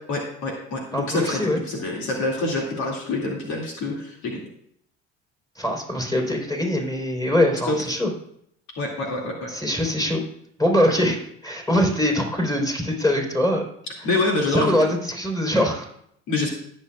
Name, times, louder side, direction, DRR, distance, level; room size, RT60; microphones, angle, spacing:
voice 1, 0.1-4.4 7.7-7.8 8.8-9.5 14.0-14.8 16.3-16.5, left 2 dB, 60° left, -1 dB, 2.4 m, -26 dB
voice 2, 0.9-1.6 5.6-8.1 9.5-10.2 10.6-13.6 14.0-14.1 14.5-15.9, left 1 dB, 10° left, 1 dB, 3.9 m, -23 dB
19.5 x 7.2 x 2.4 m, 0.69 s
hypercardioid pair, 70°, 32 cm